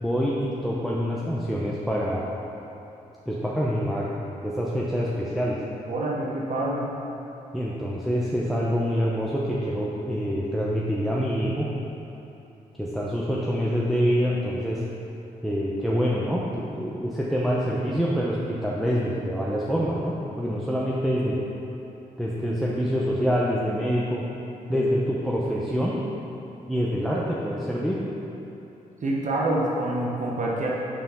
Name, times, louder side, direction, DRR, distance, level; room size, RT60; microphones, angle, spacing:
voice 1, 0.0-2.3 3.3-4.1 4.4-5.6 7.5-11.7 12.8-14.8 15.4-21.4 22.2-24.2 24.7-25.9 26.7-28.0, equal, ahead, -6 dB, 0.8 m, -26 dB
voice 2, 5.9-6.9 24.7-24.9 29.0-30.7, right 1 dB, 50° right, -3 dB, 1.0 m, -27 dB
5.9 x 4.7 x 5.6 m, 3.0 s
supercardioid pair, 55°, 16 cm